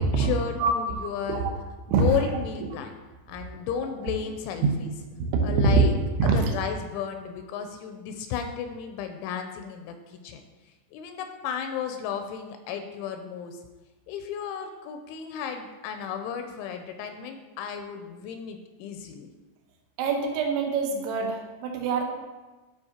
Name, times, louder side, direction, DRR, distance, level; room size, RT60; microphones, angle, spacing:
voice 1, 0.2-1.5 1.9-2.9 3.3-4.9 5.4-5.9 6.2-10.4 10.9-13.6 14.1-19.3, left 8 dB, 85° left, 6 dB, 2.8 m, -33 dB
voice 2, 5.2-5.8 6.2-6.4 20.0-22.0, right 5 dB, 80° right, 2 dB, 3.2 m, -24 dB
12.5 x 5.1 x 2.8 m, 1.2 s
omnidirectional pair, 5.5 m